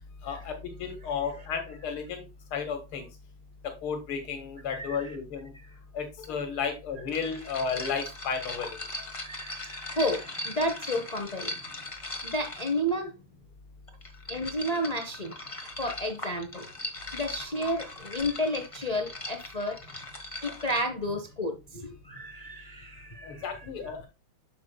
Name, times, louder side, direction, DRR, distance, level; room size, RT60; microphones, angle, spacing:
voice 1, 0.2-0.5 0.8-2.2 2.5-3.1 3.8-5.5 5.9-8.8 23.2-24.1, left 6 dB, 75° left, 2.5 m, -33 dB
voice 2, 4.7-5.0 9.2-11.8 12.2-13.1 14.3-15.5 15.8-16.6 17.1-19.8 20.4-23.5, equal, 55° left, 0.4 m, -31 dB
sound 1, 6.2-6.3 7.1-12.9 13.9-20.8, left 2 dB, 25° left, 0.7 m, -39 dB
8.5 x 6.7 x 2.2 m
omnidirectional pair, 2.4 m